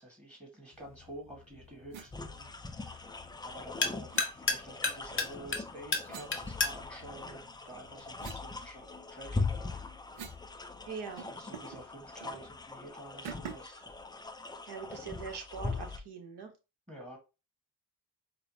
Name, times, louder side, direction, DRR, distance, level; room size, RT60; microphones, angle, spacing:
voice 1, 0.0-9.9 11.2-13.9 16.9-17.2, right 1 dB, 15° right, 0 dB, 1.8 m, -50 dB
sound 1, 0.7-8.4, left 3 dB, 25° left, 0.9 m, -37 dB
sound 2, 1.9-2.1 4.1-4.3 6.1-7.1 7.6-10.5 10.8-10.9 11.2-11.8 12.2-12.4 13.2-13.8, right 8 dB, 75° right, 0.8 m, -48 dB
sound 3, 2.1-16.0, left 3 dB, 10° left, 0.3 m, -41 dB
voice 2, 10.9-11.3 14.6-16.5, right 5 dB, 55° right, 4 dB, 1.3 m, -42 dB
5.0 x 2.2 x 2.8 m, 0.28 s
supercardioid pair, 65°, 47 cm